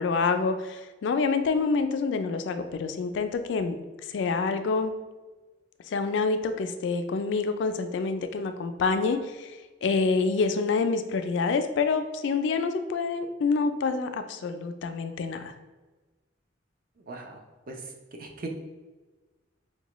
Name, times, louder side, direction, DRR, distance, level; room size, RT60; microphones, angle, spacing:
voice 1, 0.0-3.8 4.1-5.0 5.9-15.5, left 4 dB, 65° left, 8 dB, 0.3 m, -27 dB
voice 2, 17.0-17.4 17.7-17.9 18.2-18.5, right 3 dB, 50° right, 2 dB, 0.5 m, -39 dB
4.6 x 2.2 x 3.0 m, 1.2 s
head